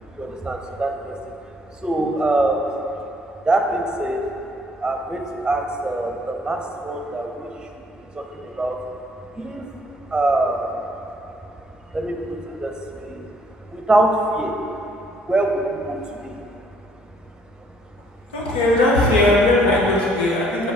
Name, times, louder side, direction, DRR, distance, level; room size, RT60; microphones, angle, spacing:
voice 1, 0.1-1.2 1.7-2.7 3.4-4.5 4.8-9.0 9.3-11.1 11.9-14.8 15.3-16.6 17.4-17.7 18.2-18.3, right 2 dB, 15° right, 2 dB, 0.8 m, -24 dB
voice 2, 18.3-20.7, left 1 dB, 80° left, -4 dB, 1.1 m, -18 dB
7.2 x 5.4 x 3.6 m, 2.9 s
hypercardioid pair, 55°, 5 cm